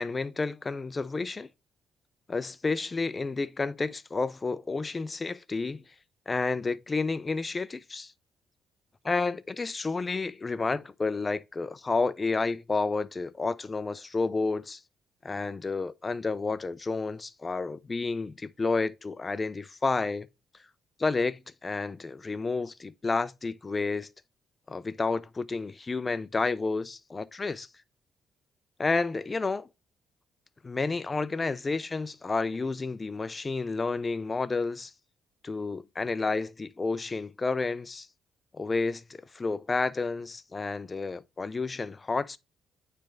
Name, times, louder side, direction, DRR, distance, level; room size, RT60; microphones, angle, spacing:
voice 1, 0.0-1.5 2.3-5.8 6.3-8.1 9.0-14.8 15.2-20.3 21.0-24.1 24.7-27.7 28.8-29.7 30.6-34.9 35.4-38.1 38.5-42.4, left 3 dB, 25° left, 0.5 m, -30 dB
9.0 x 3.4 x 3.7 m
cardioid pair, 90°, 0 cm